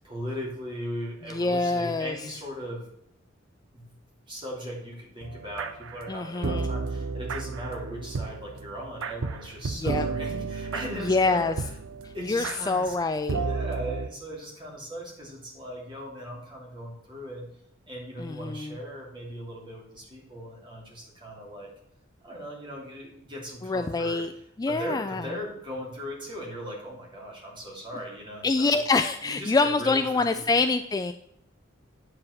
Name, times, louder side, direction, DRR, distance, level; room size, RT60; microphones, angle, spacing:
voice 1, 0.0-2.9 3.7-3.8 4.3-11.7 12.1-12.9 13.3-17.5 17.9-21.7 22.2-24.2 24.7-28.8 29.2-30.0 30.3-30.5, equal, 25° right, -3 dB, 2.9 m, -38 dB
voice 2, 1.3-2.2 6.1-6.7 9.8-10.1 11.0-11.5 12.0-13.4 18.2-18.8 23.6-24.3 24.6-25.3 28.4-31.1, left 3 dB, 20° left, 8 dB, 0.3 m, -26 dB
sound 1, 5.2-14.1, right 4 dB, 90° right, 0.6 m, -33 dB
8.7 x 4.8 x 6.4 m, 0.76 s
head